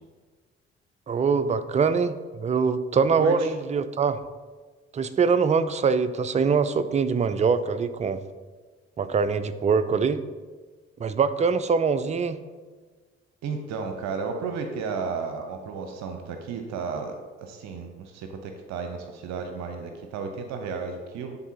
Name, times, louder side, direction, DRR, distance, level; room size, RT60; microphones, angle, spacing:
voice 1, 1.1-4.2 4.9-8.2 9.0-10.2 11.0-12.4, right 5 dB, 20° right, 12 dB, 0.4 m, -23 dB
voice 2, 3.2-3.5 13.4-17.1 17.4-21.4, right 5 dB, 55° right, 5 dB, 0.7 m, -33 dB
10.5 x 3.9 x 2.8 m, 1.4 s
figure-of-eight pair, 40°, 32 cm